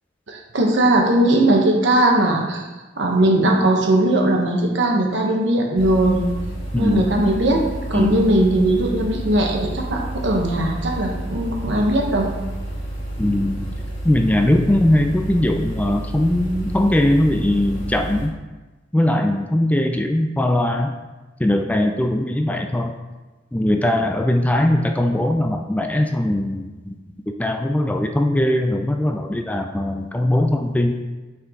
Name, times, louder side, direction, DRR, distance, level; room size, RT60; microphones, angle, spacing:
voice 1, 0.3-2.6 3.0-6.3 6.8-7.6 7.9-12.3, right 1 dB, 70° right, 0 dB, 1.2 m, -19 dB
sound 1, 5.8-18.3, right 1 dB, 80° left, 1.5 m, -30 dB
voice 2, 6.7-7.1 7.9-8.3 13.2-13.7 14.0-18.3 18.9-21.0 21.4-23.0 23.5-27.0 27.4-31.0, left 1 dB, 10° left, 4 dB, 0.3 m, -20 dB
7.8 x 4.5 x 3.7 m, 1.2 s
head